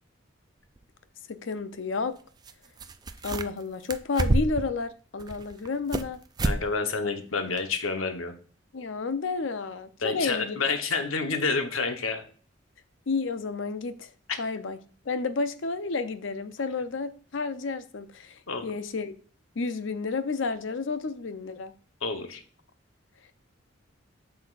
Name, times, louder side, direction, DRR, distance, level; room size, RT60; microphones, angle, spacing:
sound 1, 0.8-0.9 2.4-2.5 2.8-3.6 3.9-4.7 5.2-6.1 6.4-6.6 7.0-7.1 7.6-7.7, right 2 dB, 20° right, 0.3 m, -28 dB
voice 1, 1.3-2.2 3.2-6.2 8.7-10.6 13.1-14.1 14.4-14.8 15.1-19.1 19.6-21.7, left 4 dB, 65° left, 0.6 m, -31 dB
voice 2, 6.4-8.3 10.0-12.2 14.3-14.4 18.5-18.7 22.0-22.4, left 4 dB, 85° left, 1.0 m, -29 dB
7.6 x 5.9 x 2.4 m
head